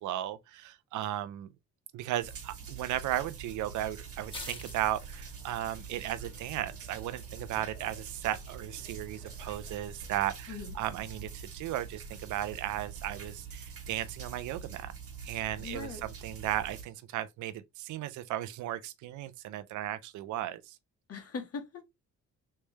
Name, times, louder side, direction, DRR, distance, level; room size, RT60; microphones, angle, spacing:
voice 1, 0.0-1.5 1.9-14.9 15.2-20.8, right 13 dB, 75° right, 0.5 m, -35 dB
sound 1, 2.2-16.8, right 6 dB, 50° right, 1.3 m, -45 dB
sound 2, 2.9-10.5, left 2 dB, 15° left, 1.4 m, -51 dB
voice 2, 15.6-16.0 21.1-21.8, left 5 dB, 50° left, 1.4 m, -40 dB
3.3 x 3.2 x 3.1 m
cardioid pair, 90°, 30 cm